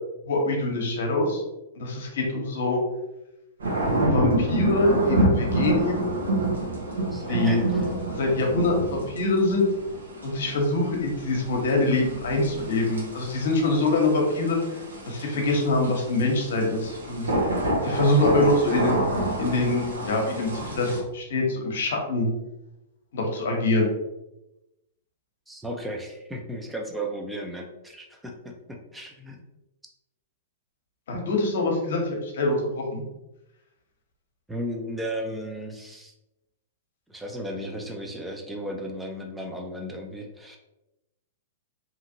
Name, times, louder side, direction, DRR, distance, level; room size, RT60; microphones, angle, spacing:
voice 1, 0.3-1.4 1.7-2.8 4.0-6.1 7.3-7.6 8.1-9.7 10.2-14.6 15.1-17.2 17.8-18.9 19.4-22.3 23.1-23.9 31.1-33.0, left 2 dB, 70° left, 1 dB, 0.8 m, -24 dB
sound 1, 3.6-21.0, right 1 dB, 85° right, 0.8 m, -28 dB
voice 2, 7.1-7.6 25.5-29.4 34.5-36.1 37.1-40.6, equal, 5° right, 2 dB, 0.5 m, -35 dB
2.8 x 2.5 x 2.7 m, 0.95 s
hypercardioid pair, 120°, 0 cm